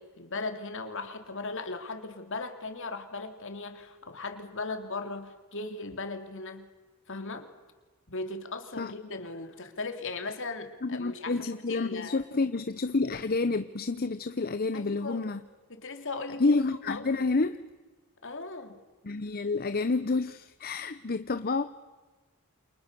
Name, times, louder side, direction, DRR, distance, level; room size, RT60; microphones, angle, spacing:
voice 1, 0.0-6.7 7.1-7.5 8.1-12.2 14.7-15.2 15.7-16.5 16.8-17.1 18.2-18.8, left 3 dB, 60° left, 6 dB, 3.0 m, -38 dB
voice 2, 10.8-15.4 16.4-17.6 19.0-21.6, left 3 dB, 45° left, 11 dB, 0.8 m, -29 dB
29.0 x 28.0 x 6.9 m, 1.3 s
head